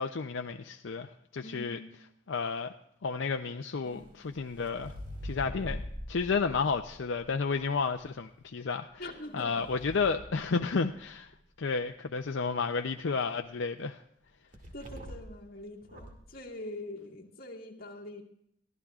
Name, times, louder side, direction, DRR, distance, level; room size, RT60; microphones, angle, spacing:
voice 1, 0.0-1.8 2.3-2.7 3.0-4.9 5.2-5.8 6.1-9.0 9.3-11.3 11.6-14.0, left 4 dB, 80° left, 6 dB, 0.6 m, -32 dB
voice 2, 1.4-1.8 9.0-9.6 14.7-18.2, left 1 dB, 50° left, -2 dB, 2.1 m, -43 dB
sound 1, 3.8-7.9 8.9-11.2 14.5-15.4 15.8-16.3, equal, 45° right, 2.3 m, -44 dB
23.0 x 15.0 x 2.4 m, 0.74 s
head